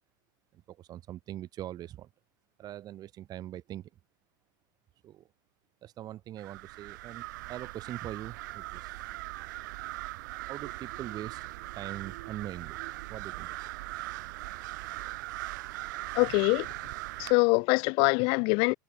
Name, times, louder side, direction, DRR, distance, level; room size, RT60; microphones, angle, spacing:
voice 1, 0.7-2.1 2.6-3.9 5.0-5.3 5.8-9.0 10.5-11.4 11.8-12.8 13.1-13.5 13.9-14.0, right 12 dB, 35° right, 3.5 m, -42 dB
sound 1, 6.4-17.3, right 19 dB, 65° right, 2.4 m, -40 dB
voice 2, 16.1-16.7 17.2-18.7, left 32 dB, 55° left, 1.1 m, -24 dB
hypercardioid pair, 105°, 11 cm